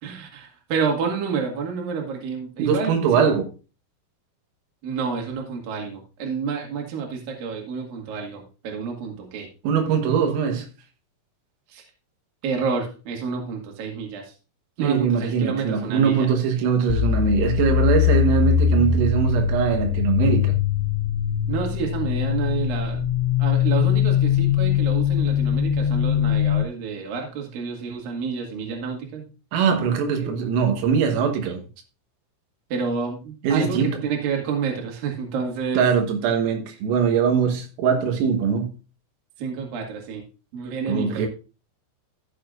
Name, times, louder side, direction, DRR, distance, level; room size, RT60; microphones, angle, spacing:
voice 1, 0.0-3.3 4.8-9.5 11.7-11.8 12.4-14.3 14.8-16.3 21.5-23.0 23.4-29.2 30.2-30.3 32.7-35.9 39.4-40.2 40.5-41.3, right 5 dB, 55° right, 3.3 m, -29 dB
voice 2, 2.6-3.5 9.6-10.7 14.8-20.6 29.5-31.6 33.4-34.0 35.7-38.7 40.9-41.3, right 6 dB, 85° right, 4.1 m, -22 dB
sound 1, 16.9-26.6, left 9 dB, 80° left, 2.7 m, -21 dB
14.5 x 6.9 x 2.5 m
omnidirectional pair, 5.9 m